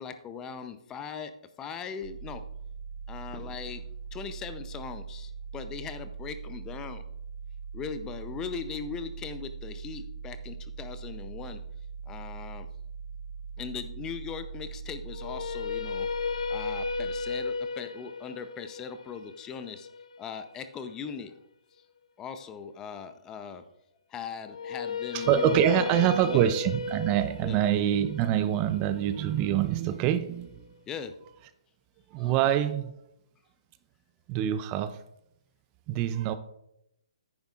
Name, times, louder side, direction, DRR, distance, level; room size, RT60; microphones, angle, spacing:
voice 1, 0.0-1.3 1.6-2.4 3.1-3.8 4.1-7.0 7.7-11.6 12.1-12.7 13.6-16.1 16.5-19.9 20.2-21.4 22.2-23.6 24.1-26.4 27.4-27.6 30.9-31.1 32.2-32.3, left 6 dB, 15° left, 10 dB, 0.6 m, -39 dB
sound 1, 2.0-17.8, right 5 dB, 55° right, 1.0 m, -41 dB
sound 2, 15.1-21.2 24.5-30.5, left 4 dB, 75° left, 0.5 m, -35 dB
voice 2, 25.1-30.6 32.1-32.9 34.3-35.0 35.9-36.3, right 11 dB, 25° right, 12 dB, 0.5 m, -25 dB
10.5 x 9.6 x 2.4 m, 0.80 s
hypercardioid pair, 140°, 3 cm